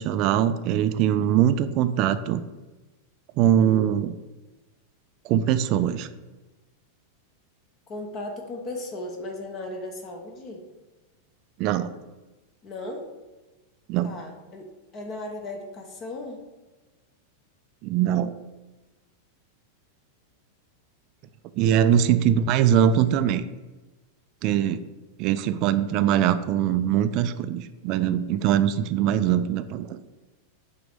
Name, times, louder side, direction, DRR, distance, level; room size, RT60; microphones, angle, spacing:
voice 1, 0.0-2.4 3.4-4.1 5.2-6.1 11.6-11.9 13.9-14.1 17.8-18.3 21.6-23.4 24.4-24.8 25.2-30.0, right 10 dB, 40° right, 11 dB, 0.4 m, -22 dB
voice 2, 7.9-10.6 12.6-13.1 14.0-14.7 14.9-16.4 21.6-22.1, left 2 dB, 30° left, 3 dB, 0.9 m, -36 dB
6.0 x 3.0 x 5.1 m, 1.2 s
figure-of-eight pair, 90°, 0 cm